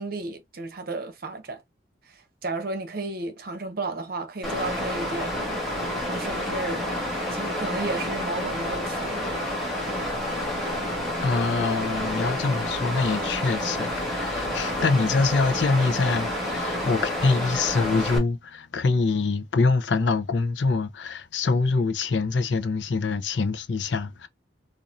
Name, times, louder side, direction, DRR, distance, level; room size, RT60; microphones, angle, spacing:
voice 1, 0.0-1.6 2.1-5.6 6.1-7.0 7.3-9.3, right 3 dB, 55° right, 0.8 m, -33 dB
Water, 4.4-18.2, left 1 dB, ahead, 1.6 m, -29 dB
voice 2, 11.2-24.3, left 4 dB, 85° left, 0.5 m, -25 dB
4.1 x 2.6 x 2.4 m
head